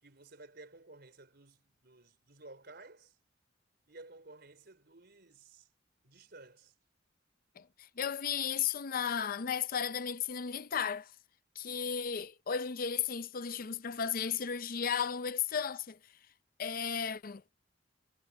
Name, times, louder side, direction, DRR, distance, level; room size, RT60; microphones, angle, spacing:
voice 1, 0.0-3.2 3.9-5.7 6.0-6.7, right 2 dB, 55° right, 4.3 m, -54 dB
voice 2, 7.6-11.1 11.6-16.0 16.6-17.4, left 7 dB, 50° left, 0.5 m, -34 dB
head